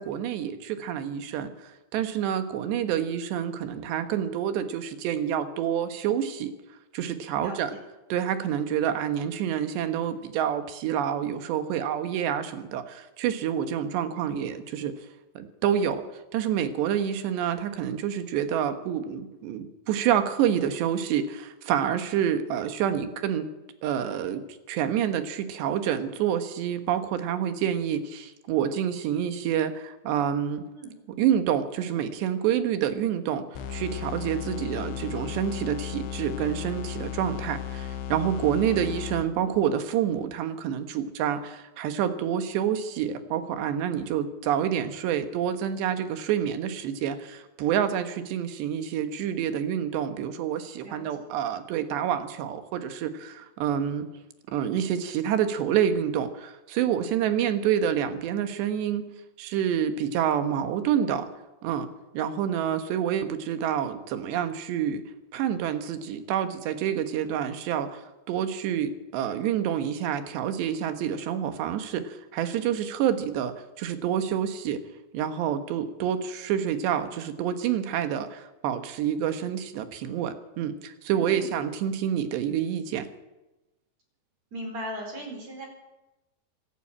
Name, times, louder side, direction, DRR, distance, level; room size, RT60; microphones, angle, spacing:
voice 1, 0.0-6.5 6.9-7.7 8.1-14.9 15.4-16.1 16.3-23.5 23.8-30.7 31.2-54.1 54.5-59.1 59.4-61.3 61.6-61.9 62.1-65.0 65.3-74.8 75.1-83.1, right 9 dB, 90° right, 9 dB, 3.6 m, -28 dB
voice 2, 7.4-7.8 30.7-30.9 38.6-38.9 50.8-51.1 81.2-81.5 84.5-85.7, right 1 dB, 40° right, 2 dB, 5.3 m, -38 dB
sound 1, 33.6-39.6, left 10 dB, 85° left, 3.7 m, -35 dB
25.0 x 12.0 x 8.9 m, 1.0 s
omnidirectional pair, 4.8 m